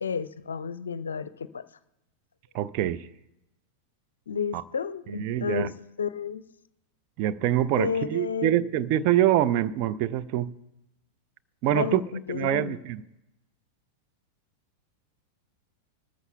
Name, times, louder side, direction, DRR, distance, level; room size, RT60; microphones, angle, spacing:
voice 1, 0.0-1.7 4.3-6.4 7.8-8.5 11.7-12.7, left 6 dB, 70° left, 0.5 m, -31 dB
voice 2, 2.5-3.1 4.5-4.6 5.1-5.7 7.2-10.6 11.6-12.0 12.3-13.0, right 12 dB, 45° right, 0.5 m, -25 dB
21.0 x 13.5 x 2.3 m
figure-of-eight pair, 90°, 0 cm